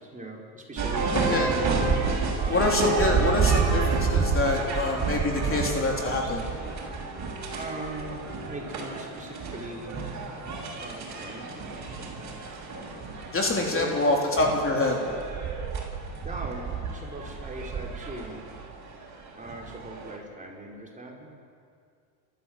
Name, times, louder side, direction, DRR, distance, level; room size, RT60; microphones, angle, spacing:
voice 1, 0.0-1.7 2.4-2.9 7.4-10.0 10.8-12.1 13.5-14.2 16.2-18.6 19.4-21.4, right 2 dB, 15° right, -1 dB, 5.0 m, -40 dB
sound 1, 0.8-20.2, right 5 dB, 35° right, 6.9 m, -30 dB
voice 2, 2.5-6.5 13.3-15.0, left 2 dB, 25° left, 0 dB, 3.4 m, -25 dB
30.0 x 14.5 x 8.2 m, 2.4 s
supercardioid pair, 105°, 47 cm